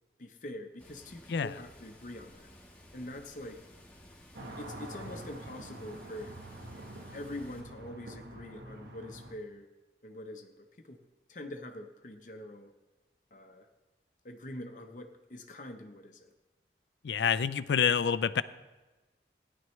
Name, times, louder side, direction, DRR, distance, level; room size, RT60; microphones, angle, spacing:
voice 1, 0.2-2.5 2.9-3.6 4.6-6.3 7.1-9.7 10.0-11.0 11.3-12.7 13.3-13.7 14.2-16.3, left 1 dB, 45° left, 5 dB, 0.8 m, -44 dB
Water, 0.8-7.6, left 1 dB, 10° left, 1.4 m, -56 dB
sound 1, 4.3-9.3, right 1 dB, 75° right, 1.2 m, -46 dB
voice 2, 17.0-18.4, left 7 dB, 80° left, 15 dB, 0.4 m, -27 dB
17.0 x 10.5 x 3.2 m, 1.2 s
head